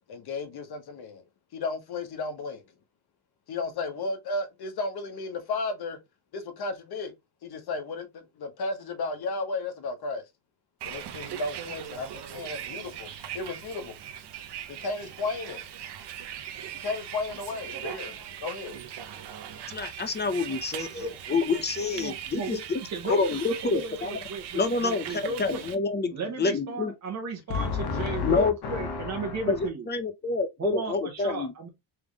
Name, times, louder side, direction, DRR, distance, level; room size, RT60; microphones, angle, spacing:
voice 1, 0.1-1.2 1.5-2.6 3.5-6.0 6.3-7.1 7.4-10.2 10.8-14.0 14.7-15.7 16.7-18.8 27.5-29.7, left 3 dB, 55° left, 1.2 m, -33 dB
Bus, 10.8-25.8, right 10 dB, 65° right, 0.9 m, -40 dB
voice 2, 19.7-22.8 23.0-24.2 24.5-26.9 28.2-28.5 29.5-31.5, left 4 dB, 25° left, 0.6 m, -28 dB
voice 3, 22.0-22.6 22.9-23.2 23.6-25.6 26.1-29.9 30.6-31.7, right 3 dB, 40° right, 1.1 m, -35 dB
3.5 x 3.4 x 3.5 m
cardioid pair, 125°, 45 cm